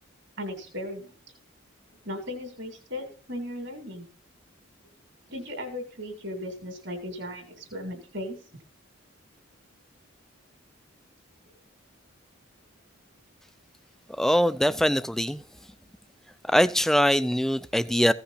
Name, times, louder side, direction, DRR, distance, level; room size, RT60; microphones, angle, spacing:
voice 1, 0.4-1.1 2.0-4.1 5.3-8.4, left 1 dB, 55° right, 2.7 m, -36 dB
voice 2, 14.1-15.4 16.5-18.1, equal, ahead, 0.4 m, -22 dB
15.5 x 5.8 x 5.6 m
head